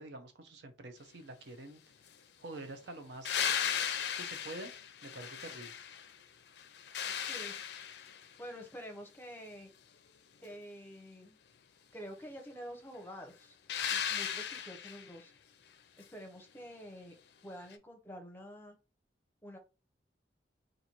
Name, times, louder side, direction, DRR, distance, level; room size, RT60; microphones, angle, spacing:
voice 1, 0.0-1.8 2.4-3.5 4.2-4.7 5.0-5.8, right 2 dB, 70° right, 7 dB, 0.6 m, -47 dB
sound 1, 3.2-6.2 6.6-8.3 13.7-15.1 17.7-17.8, left 8 dB, 65° left, 0.4 m, -36 dB
voice 2, 7.2-7.5 8.4-9.7 10.4-11.4 11.9-13.6 13.9-15.3 16.0-17.2 17.4-18.8 19.4-19.6, equal, 10° left, 4 dB, 0.6 m, -48 dB
4.2 x 2.6 x 2.9 m, 0.32 s
head